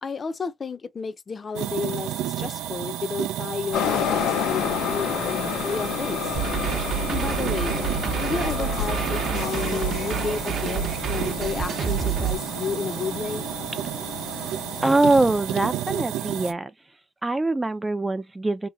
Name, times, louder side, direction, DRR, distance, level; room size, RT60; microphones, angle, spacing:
voice 1, 0.0-6.4 7.1-7.8 8.2-13.5, left 5 dB, 40° left, 0.6 m, -32 dB
sound 1, 1.5-16.5, right 12 dB, 90° right, 0.4 m, -32 dB
sound 2, 3.7-15.4, left 8 dB, 90° left, 0.6 m, -30 dB
sound 3, 6.3-12.4, right 9 dB, 60° right, 0.8 m, -28 dB
voice 2, 14.8-16.7 17.2-18.7, right 2 dB, 20° right, 0.4 m, -23 dB
2.9 x 2.2 x 3.8 m
cardioid pair, 90°, 0 cm